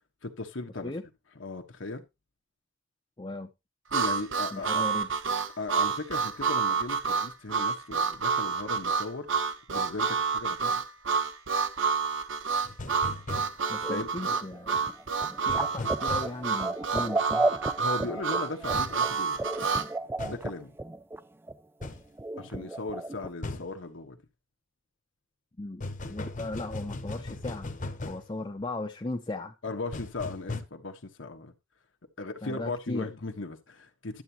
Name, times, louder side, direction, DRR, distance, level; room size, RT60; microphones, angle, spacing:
voice 1, 0.2-0.9 1.3-2.0 3.9-4.8 5.6-9.3 9.7-10.8 13.9-14.1 17.8-19.4 20.2-20.7 22.4-24.2 29.6-31.5 32.2-34.2, left 3 dB, 80° left, 1.4 m, -37 dB
voice 2, 3.2-3.5 4.5-5.1 13.7-14.9 15.5-17.5 25.6-27.7 28.1-29.5 32.4-33.1, left 2 dB, 25° left, 0.7 m, -37 dB
Harmonica, 3.9-19.9, right 5 dB, 80° right, 1.1 m, -29 dB
sound 1, 12.6-13.5 15.5-16.3 18.7-19.0 20.2-20.4 21.8-22.0 23.4-23.7 25.8-28.2 29.9-30.6, left 2 dB, 45° left, 1.1 m, -37 dB
sound 2, 13.8-21.2 21.5-21.6 21.8-21.9 22.2-23.3, right 2 dB, 10° right, 0.4 m, -33 dB
12.0 x 8.2 x 2.9 m
head